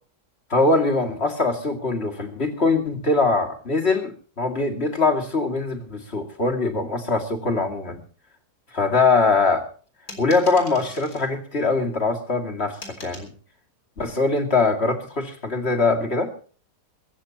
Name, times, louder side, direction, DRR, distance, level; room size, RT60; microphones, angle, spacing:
voice 1, 0.5-8.0 8.7-9.7 10.2-13.3 14.0-16.3, left 3 dB, 35° left, 4 dB, 2.6 m, -22 dB
sound 1, 10.1-11.3 12.8-13.3, left 2 dB, 55° left, 4.3 m, -41 dB
23.5 x 14.5 x 2.9 m, 0.41 s
omnidirectional pair, 1.9 m